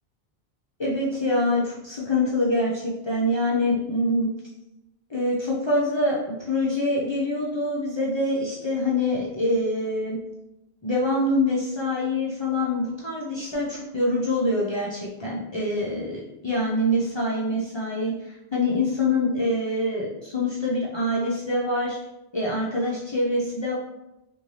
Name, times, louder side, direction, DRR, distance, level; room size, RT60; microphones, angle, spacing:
voice 1, 0.8-4.3 5.1-10.2 10.8-22.0 22.3-23.7, left 1 dB, 45° left, -5 dB, 0.4 m, -25 dB
2.6 x 2.5 x 3.1 m, 0.94 s
omnidirectional pair, 1.0 m